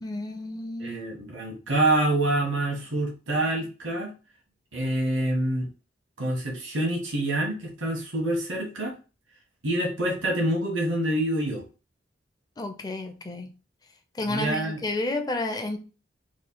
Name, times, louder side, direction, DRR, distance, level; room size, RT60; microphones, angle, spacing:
voice 1, 0.0-1.0 12.6-13.5 14.1-15.8, left 2 dB, 20° left, 0.5 m, -31 dB
voice 2, 0.8-4.1 4.7-5.7 6.2-8.9 9.6-11.6 14.3-14.8, right 1 dB, 90° right, 1.1 m, -26 dB
3.1 x 2.5 x 3.8 m
head